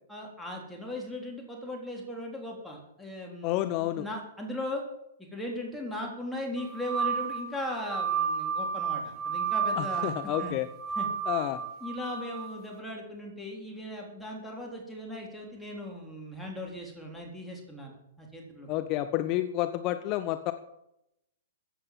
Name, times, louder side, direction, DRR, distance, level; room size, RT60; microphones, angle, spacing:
voice 1, 0.1-4.8 5.2-10.1 10.4-10.5 11.0-11.1 11.8-18.7, left 1 dB, 5° left, -2 dB, 3.8 m, -38 dB
voice 2, 3.4-4.0 9.8-10.7 11.3-11.6 18.7-20.5, left 14 dB, 35° left, 10 dB, 0.9 m, -30 dB
sound 1, 6.6-12.6, right 6 dB, 15° right, 4.4 m, -32 dB
15.5 x 8.0 x 7.7 m, 0.81 s
figure-of-eight pair, 110°, 0 cm